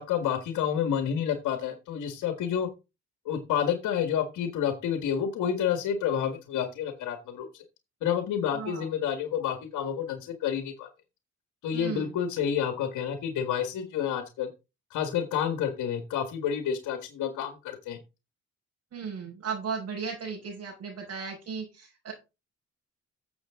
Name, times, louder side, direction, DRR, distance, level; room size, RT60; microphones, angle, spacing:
voice 1, 0.0-2.7 3.3-7.6 8.0-10.9 11.6-14.5 14.9-18.0, left 8 dB, 80° left, 7 dB, 1.9 m, -29 dB
voice 2, 8.5-8.8 11.7-12.2 18.9-22.1, right 5 dB, 60° right, -4 dB, 5.7 m, -36 dB
13.0 x 7.4 x 3.7 m, 0.27 s
cardioid pair, 90°, 30 cm